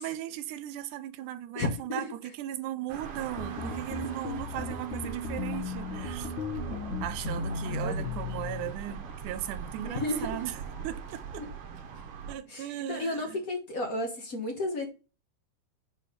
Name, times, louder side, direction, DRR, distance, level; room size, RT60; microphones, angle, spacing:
voice 1, 0.0-6.3 7.0-11.5 12.3-13.4, right 12 dB, 85° right, 2.1 m, -37 dB
voice 2, 1.5-2.0 7.6-7.9 9.8-10.4 12.5-12.6 12.9-14.9, left 2 dB, 90° left, 0.7 m, -32 dB
sound 1, 2.9-12.3, right 6 dB, 60° right, 1.7 m, -42 dB
sound 2, 3.4-8.7, left 3 dB, 65° left, 1.2 m, -35 dB
6.7 x 4.3 x 6.6 m
omnidirectional pair, 3.6 m